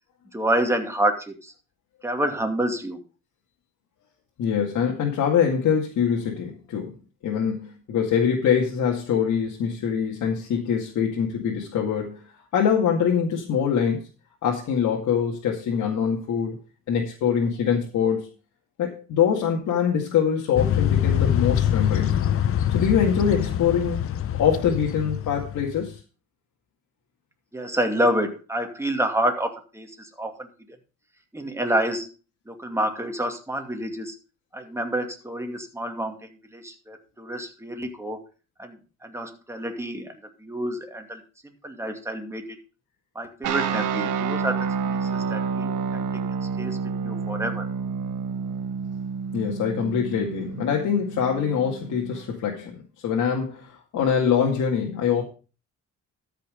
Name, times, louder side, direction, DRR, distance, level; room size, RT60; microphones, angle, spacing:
voice 1, 0.3-1.5 2.0-3.0 27.5-30.5 31.3-32.1 32.5-34.2 34.5-38.2 38.6-40.1 40.4-41.2 41.6-42.4 43.1-46.0 46.6-47.7, right 1 dB, 10° right, 4 dB, 2.5 m, -28 dB
voice 2, 4.4-7.0 7.2-14.0 14.4-16.6 16.9-18.3 18.8-22.2 22.7-24.1 24.3-26.0 49.3-52.8 53.0-55.2, left 7 dB, 75° left, -1 dB, 2.2 m, -24 dB
sound 1, 20.6-25.9, left 10 dB, 50° left, 0.7 m, -24 dB
sound 2, 43.4-52.3, right 6 dB, 85° right, 1.4 m, -29 dB
13.0 x 5.9 x 5.2 m, 0.35 s
cardioid pair, 90°, 30 cm